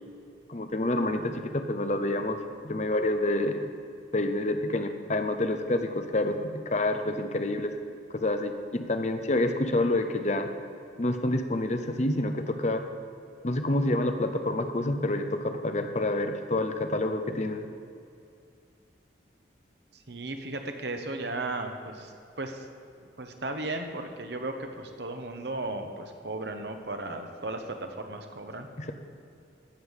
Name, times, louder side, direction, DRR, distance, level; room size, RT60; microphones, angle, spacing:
voice 1, 0.5-3.7 4.1-7.7 8.1-10.5 11.0-12.9 13.4-17.7 28.8-28.9, left 1 dB, 40° left, 7 dB, 0.7 m, -28 dB
voice 2, 19.9-22.7 23.2-28.7, right 2 dB, 65° right, 5 dB, 1.1 m, -35 dB
14.0 x 5.5 x 8.1 m, 2.5 s
head